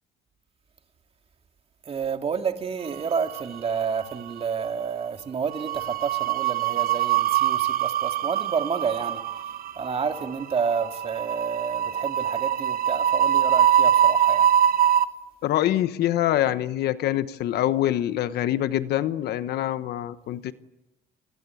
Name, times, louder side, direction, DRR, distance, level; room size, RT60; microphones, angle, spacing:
voice 1, 1.9-9.2 9.8-14.5, right 6 dB, 35° right, 2.4 m, -29 dB
sound 1, 3.0-3.8 4.0-4.3 5.5-15.0, right 10 dB, 60° right, 1.2 m, -23 dB
voice 2, 15.4-20.5, left 13 dB, 75° left, 1.2 m, -25 dB
29.5 x 20.5 x 8.6 m
cardioid pair, 110°, 17 cm